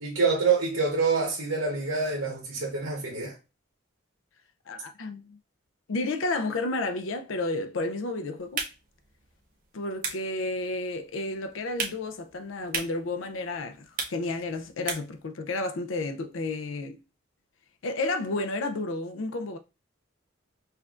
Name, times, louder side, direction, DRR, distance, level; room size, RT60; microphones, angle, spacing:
voice 1, 0.0-3.3, right 4 dB, 75° right, 1.0 m, -26 dB
voice 2, 4.7-5.4 5.9-8.7 9.7-17.0 17.8-19.6, left 2 dB, 70° left, 0.5 m, -31 dB
sound 1, 8.4-15.3, right 5 dB, 45° right, 0.9 m, -38 dB
5.5 x 2.5 x 2.4 m
head